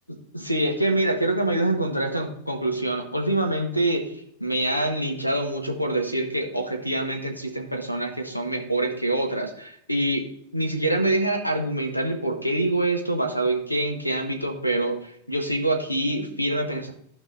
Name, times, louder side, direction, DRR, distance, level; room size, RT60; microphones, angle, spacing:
voice 1, 0.1-10.2 10.5-16.9, right 1 dB, 90° left, 4 dB, 1.4 m, -25 dB
14.5 x 5.4 x 2.7 m, 0.69 s
figure-of-eight pair, 90°, 0 cm